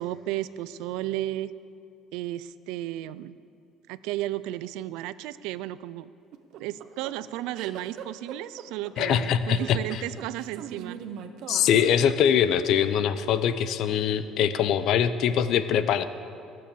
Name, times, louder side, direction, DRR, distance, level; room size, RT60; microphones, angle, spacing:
voice 1, 0.0-1.5 2.1-3.4 3.9-6.1 6.6-11.0, right 14 dB, 85° right, 16 dB, 0.4 m, -33 dB
sound 1, 6.3-12.6, right 8 dB, 55° right, 1.0 m, -41 dB
voice 2, 9.0-10.0 11.5-16.1, left 8 dB, 50° left, 12 dB, 0.6 m, -23 dB
21.5 x 7.7 x 6.9 m, 2.4 s
cardioid pair, 180°, 0 cm